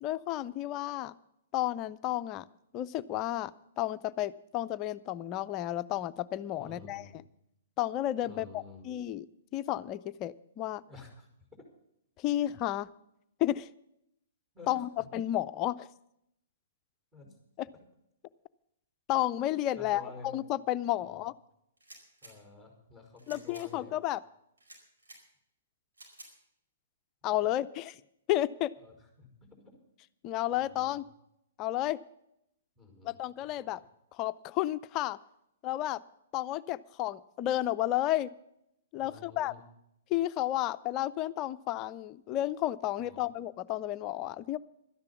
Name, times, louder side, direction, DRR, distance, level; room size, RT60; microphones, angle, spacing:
voice 1, 0.0-1.1 1.5-2.4 2.7-3.5 3.8-7.1 7.8-9.3 9.5-10.8 12.2-12.9 13.4-13.7 14.7-15.9 17.6-17.7 19.1-21.3 23.3-24.2 27.2-28.0 28.3-28.7 30.2-31.0 31.6-32.0 33.0-33.8 34.1-35.2 35.6-36.0 36.3-38.3 38.9-39.5 40.1-44.6, left 14 dB, 30° left, 14 dB, 0.5 m, -32 dB
voice 2, 6.6-7.2 8.2-8.9 10.9-11.3 14.5-15.1 17.1-17.3 19.8-20.3 21.0-21.2 22.2-23.9 28.8-29.3 30.5-30.9 32.8-33.5 39.0-39.6 43.0-43.3, left 3 dB, 10° right, 1 dB, 5.3 m, -51 dB
sound 1, 21.8-22.3 23.2-23.7 24.6-25.2 26.0-26.3, right 1 dB, 85° right, 4.9 m, -52 dB
13.0 x 10.5 x 7.1 m, 0.77 s
hypercardioid pair, 125°, 0 cm